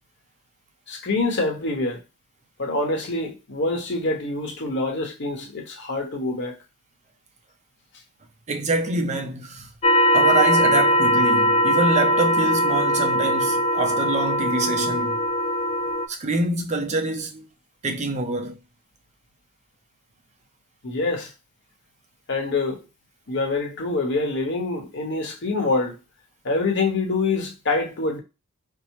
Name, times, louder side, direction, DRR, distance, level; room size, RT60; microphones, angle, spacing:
voice 1, 0.9-2.0 2.6-6.6 20.8-21.3 22.3-22.8 23.3-26.0 26.4-28.2, left 3 dB, 60° left, 0.9 m, -25 dB
voice 2, 8.5-9.7 10.1-15.2 16.1-17.5 17.8-18.6, right 2 dB, 35° right, 0.5 m, -25 dB
sound 1, 9.8-16.1, equal, 30° left, 0.3 m, -20 dB
4.6 x 2.0 x 2.9 m
head